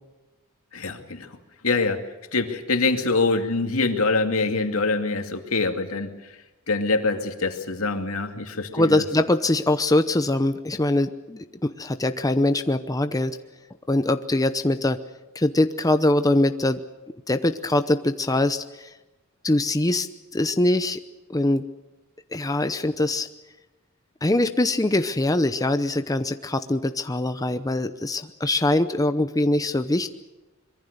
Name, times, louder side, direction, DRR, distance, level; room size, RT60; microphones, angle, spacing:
voice 1, 0.7-1.3 1.6-2.0 2.3-6.1 6.7-9.0, left 3 dB, 80° left, 5 dB, 2.5 m, -24 dB
voice 2, 8.7-13.3 13.9-15.0 15.3-16.8 17.3-18.9 19.4-20.1 20.3-21.0 21.3-21.6 22.3-23.3 24.2-30.1, left 1 dB, 15° left, 9 dB, 0.8 m, -23 dB
25.0 x 22.5 x 6.7 m, 1.1 s
head